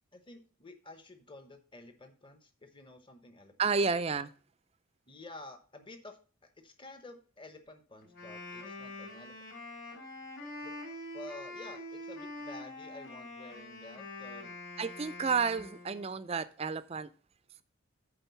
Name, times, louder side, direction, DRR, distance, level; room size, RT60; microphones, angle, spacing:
voice 1, 0.1-3.9 5.1-6.2 6.6-9.3 10.6-10.7 11.1-14.6, left 2 dB, 25° left, 1.0 m, -51 dB
voice 2, 3.6-4.3 14.8-17.1, right 5 dB, 30° right, 0.4 m, -31 dB
Wind instrument woodwind instrument, 8.0-16.2, left 2 dB, 45° left, 4.1 m, -45 dB
8.9 x 3.9 x 6.9 m
head